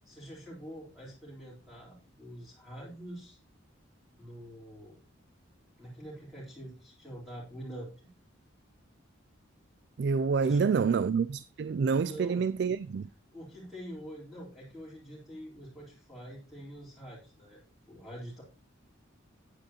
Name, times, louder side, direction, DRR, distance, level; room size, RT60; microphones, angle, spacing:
voice 1, 0.0-3.4 4.2-5.0 5.8-8.1 10.4-10.9 12.0-12.5 13.3-17.6 17.9-18.4, equal, ahead, 4.0 m, -45 dB
voice 2, 10.0-13.1, right 5 dB, 55° right, 0.3 m, -27 dB
9.7 x 9.5 x 3.0 m
head